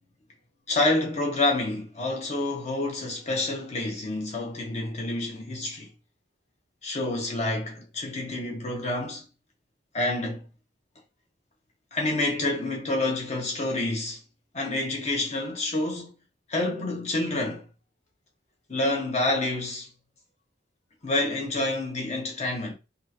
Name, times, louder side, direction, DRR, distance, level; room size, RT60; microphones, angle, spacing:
voice 1, 0.7-5.9 6.8-9.2 9.9-10.5 11.9-14.2 14.5-16.1 16.5-17.7 18.7-19.9 21.0-22.7, left 2 dB, 40° left, 1.1 m, -28 dB
3.5 x 2.6 x 2.8 m
head